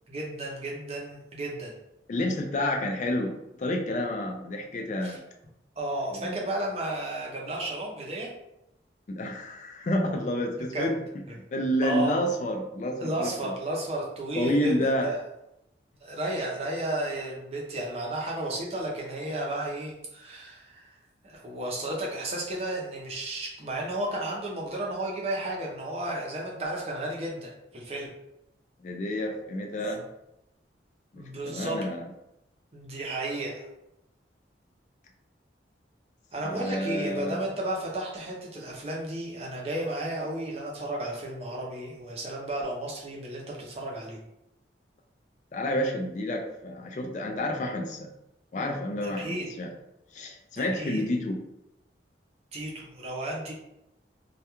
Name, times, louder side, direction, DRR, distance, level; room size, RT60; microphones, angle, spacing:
voice 1, 0.1-1.7 5.0-5.2 5.8-8.3 10.7-10.9 11.8-12.1 13.0-15.2 16.0-20.9 21.2-28.1 31.2-31.8 32.7-33.7 36.3-44.2 49.0-49.5 50.6-51.0 52.5-53.5, right 1 dB, 35° right, -2 dB, 0.5 m, -33 dB
voice 2, 2.1-5.2 6.1-6.4 9.1-11.0 11.5-13.5 14.4-15.1 28.8-30.0 31.1-32.1 36.4-37.4 45.5-48.1 48.5-49.7 50.1-51.4, left 1 dB, 40° left, 3 dB, 0.3 m, -29 dB
2.2 x 2.2 x 2.9 m, 0.88 s
head